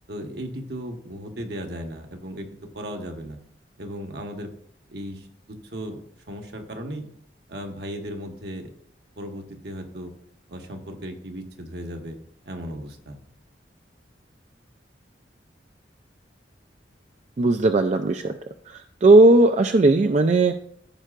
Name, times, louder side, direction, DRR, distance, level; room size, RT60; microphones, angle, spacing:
voice 1, 0.1-2.5 2.7-3.4 3.8-4.5 4.9-7.1 7.5-8.7 9.2-10.1 10.5-12.2 12.4-13.2, equal, 70° right, 3 dB, 1.2 m, -36 dB
voice 2, 17.4-18.3 18.7-20.5, right 2 dB, 40° right, 7 dB, 0.4 m, -17 dB
14.5 x 5.5 x 2.5 m, 0.67 s
head